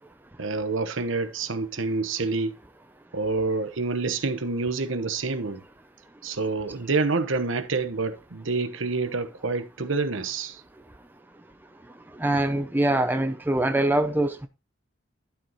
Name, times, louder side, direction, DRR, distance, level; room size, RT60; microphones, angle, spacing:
voice 1, 0.4-2.5 3.1-5.6 6.2-10.6, right 3 dB, 70° right, 1.0 m, -27 dB
voice 2, 12.2-14.5, right 1 dB, 10° right, 0.5 m, -23 dB
11.5 x 4.7 x 4.1 m
head